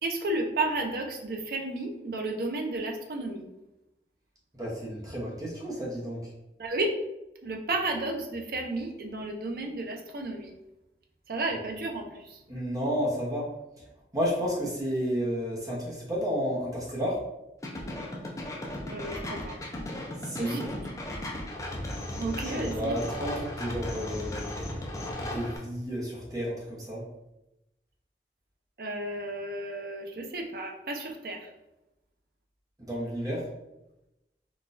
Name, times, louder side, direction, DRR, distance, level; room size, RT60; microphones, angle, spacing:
voice 1, 0.0-3.5 6.6-6.9 7.4-10.5 11.3-12.4 18.9-19.6 20.4-20.9 22.2-23.0 28.8-31.5, right 2 dB, 55° right, 2 dB, 0.5 m, -32 dB
voice 2, 4.5-6.3 12.5-13.5 14.1-17.2 20.2-20.6 22.4-24.5 25.2-27.0 32.8-33.5, equal, 20° right, -5 dB, 0.7 m, -31 dB
sound 1, 17.6-25.6, left 1 dB, 20° left, 0.4 m, -36 dB
3.9 x 2.3 x 2.5 m, 0.94 s
head